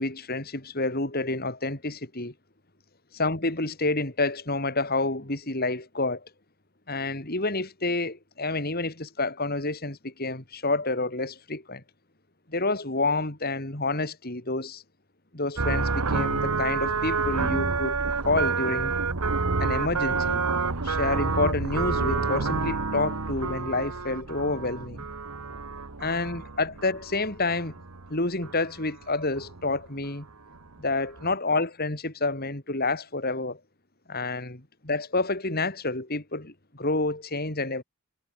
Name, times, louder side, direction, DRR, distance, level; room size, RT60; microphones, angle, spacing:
voice 1, 0.0-2.3 3.1-6.3 6.9-11.8 12.5-14.8 15.3-18.0 18.2-19.0 19.6-20.4 20.8-25.1 26.0-27.7 28.1-30.3 30.8-33.6 34.1-37.8, left 2 dB, 45° left, 3.4 m, -29 dB
sound 1, 15.6-28.1 28.4-29.0 29.4-29.8 30.3-30.4 30.5-30.9 31.2-31.3, right 4 dB, 90° right, 1.5 m, -28 dB
head